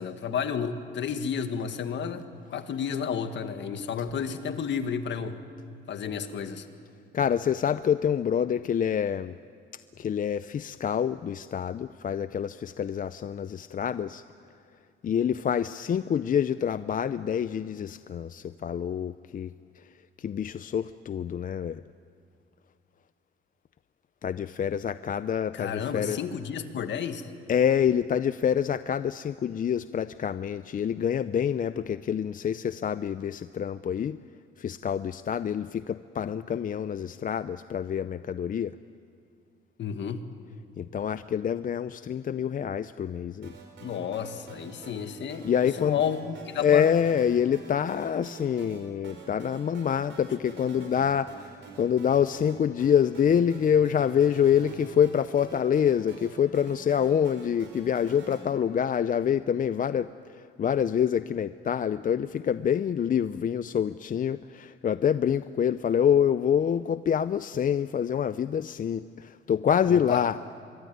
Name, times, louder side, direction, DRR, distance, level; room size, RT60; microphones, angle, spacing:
voice 1, 0.0-5.4 5.9-6.7 25.5-27.3 39.8-40.2 43.8-46.9 69.9-70.2, left 7 dB, 65° left, 8 dB, 1.8 m, -31 dB
voice 2, 7.1-9.3 10.0-14.2 15.0-19.5 20.2-21.8 24.2-26.2 27.5-34.2 34.6-38.7 40.8-43.5 45.4-46.0 46.6-70.4, left 8 dB, 45° left, 14 dB, 0.5 m, -26 dB
sound 1, 43.4-58.4, right 3 dB, 70° right, 5.5 m, -46 dB
24.5 x 22.5 x 9.4 m, 2.3 s
cardioid pair, 90°, 20 cm